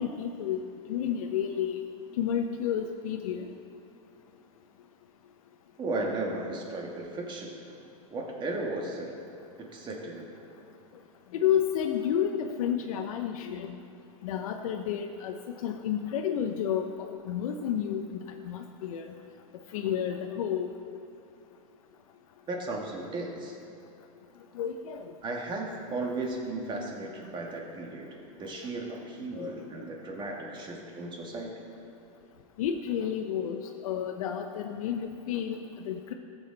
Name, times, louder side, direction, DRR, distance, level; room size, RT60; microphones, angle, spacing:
voice 1, 0.0-1.8 2.2-3.5 11.3-13.8 14.2-18.2 18.4-19.1 19.7-20.7 24.5-25.1 29.3-29.5 32.6-36.1, left 9 dB, 80° left, 4 dB, 0.7 m, -31 dB
voice 2, 5.8-7.6 8.1-9.1 9.6-10.3 22.5-23.5 25.2-31.5, right 2 dB, 25° right, 0 dB, 1.8 m, -35 dB
15.0 x 7.2 x 4.0 m, 2.7 s
supercardioid pair, 130°, 18 cm